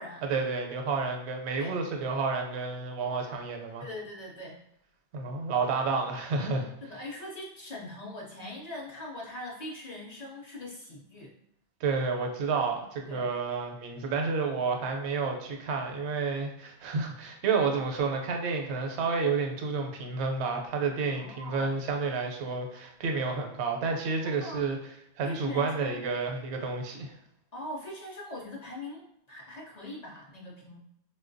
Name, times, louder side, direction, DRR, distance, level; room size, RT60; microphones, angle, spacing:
voice 1, 0.3-3.8 5.1-6.7 11.8-24.8 25.2-27.1, right 4 dB, 80° right, 2 dB, 0.8 m, -30 dB
voice 2, 3.8-4.6 6.8-11.3 13.1-13.3 21.1-21.7 24.2-24.7 25.2-26.0 27.5-30.8, left 1 dB, 50° left, -2 dB, 0.5 m, -41 dB
4.2 x 2.2 x 2.5 m, 0.80 s
omnidirectional pair, 1.1 m